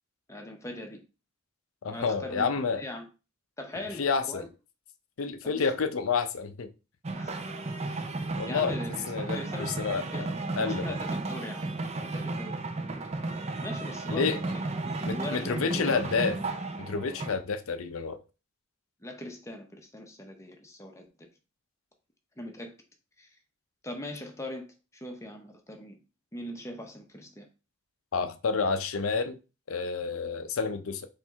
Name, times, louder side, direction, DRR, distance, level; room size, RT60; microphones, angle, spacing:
voice 1, 0.3-1.0 1.9-2.5 2.7-3.1 3.6-4.5 5.4-5.7 7.1-7.5 7.8-8.0 8.5-8.9 9.3-10.3 10.6-11.7 12.0-12.6 13.6-16.1 19.0-21.3 22.4-22.7 23.2-23.3 23.8-24.7 24.9-26.0 26.3-27.5, left 1 dB, 15° left, 0.7 m, -41 dB
voice 2, 1.8-2.8 4.0-4.4 5.2-6.7 8.4-8.8 9.1-10.3 10.6-11.0 14.1-14.4 15.1-16.4 16.8-18.2 28.1-29.4 29.7-31.1, left 5 dB, 70° left, 0.6 m, -29 dB
sound 1, 7.0-17.3, right 2 dB, 30° right, 0.5 m, -34 dB
4.4 x 3.2 x 3.5 m
head